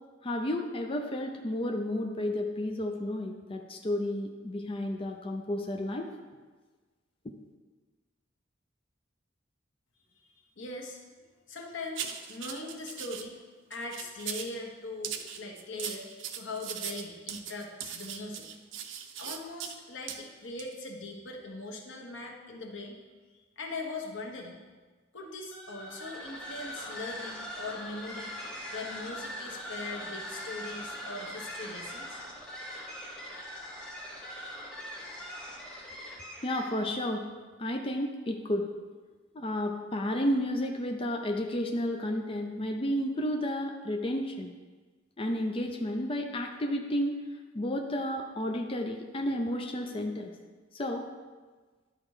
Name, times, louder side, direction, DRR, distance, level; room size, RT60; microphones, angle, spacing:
voice 1, 0.2-6.1 36.4-37.2 37.6-38.6 39.3-44.5 45.2-47.2 47.5-50.3 50.7-51.1, left 1 dB, 30° left, 3 dB, 0.5 m, -32 dB
voice 2, 10.2-11.0 11.5-13.4 13.7-16.1 16.3-18.5 19.2-23.0 23.6-24.6 25.1-28.3 28.7-32.2, left 2 dB, 90° left, 1 dB, 1.3 m, -40 dB
sound 1, 11.9-13.2 13.7-14.5 15.0-19.8 20.1-20.2 20.6-20.7, right 8 dB, 75° right, 0.6 m, -39 dB
sound 2, 25.5-36.9, equal, 5° left, 1.3 m, -41 dB
11.0 x 4.2 x 4.9 m, 1.4 s
head